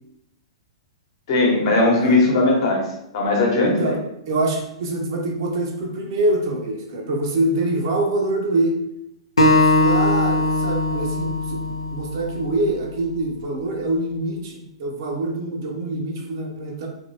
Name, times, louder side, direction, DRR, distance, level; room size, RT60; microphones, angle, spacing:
voice 1, 1.3-2.8 3.1-3.9, left 2 dB, 50° left, -2 dB, 1.0 m, -18 dB
voice 2, 3.6-4.0 4.3-8.8 9.5-11.6 11.9-16.9, right 2 dB, 50° right, 1 dB, 0.6 m, -25 dB
Acoustic guitar, 9.4-12.7, left 1 dB, 80° left, 0.4 m, -20 dB
2.9 x 2.5 x 2.7 m, 0.81 s
figure-of-eight pair, 110°, 3 cm